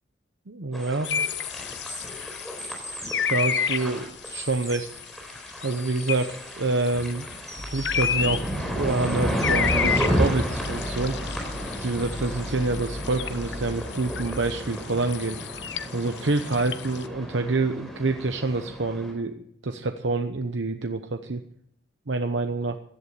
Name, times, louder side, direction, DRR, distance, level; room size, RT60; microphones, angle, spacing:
voice 1, 0.5-1.1 3.3-4.9 5.6-7.3 7.7-11.2 11.8-15.4 15.9-21.4 22.1-22.8, right 3 dB, 85° right, 7 dB, 0.9 m, -27 dB
sound 1, 0.7-19.1, equal, ahead, 4.2 m, -32 dB
sound 2, 1.0-17.1, left 7 dB, 70° left, 1.0 m, -32 dB
sound 3, 7.6-14.6, equal, 50° left, 2.7 m, -38 dB
16.0 x 11.5 x 6.8 m, 0.72 s
head